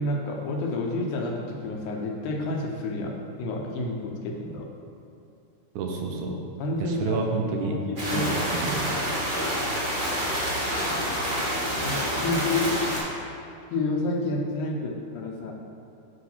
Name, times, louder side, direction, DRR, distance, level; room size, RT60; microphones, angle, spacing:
voice 1, 0.0-4.7 6.6-7.2 7.6-8.3 11.8-12.7 13.7-15.5, left 2 dB, 80° left, 0 dB, 2.3 m, -29 dB
voice 2, 5.8-6.4 6.8-7.8 8.1-8.9, right 4 dB, 80° right, 2 dB, 2.1 m, -29 dB
sound 1, 8.0-13.0, equal, 35° right, 0.7 m, -28 dB
9.3 x 3.3 x 5.5 m, 2.7 s
omnidirectional pair, 3.6 m